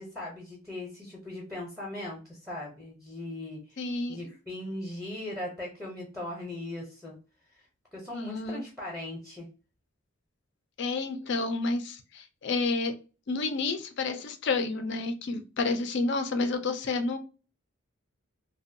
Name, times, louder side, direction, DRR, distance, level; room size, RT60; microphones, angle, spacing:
voice 1, 0.0-7.2 7.6-7.7 7.9-9.5, left 1 dB, ahead, -3 dB, 0.6 m, -39 dB
voice 2, 3.8-4.2 8.1-8.6 10.8-13.0 13.3-17.2, left 3 dB, 55° left, 8 dB, 0.4 m, -30 dB
2.5 x 2.2 x 2.6 m, 0.33 s
head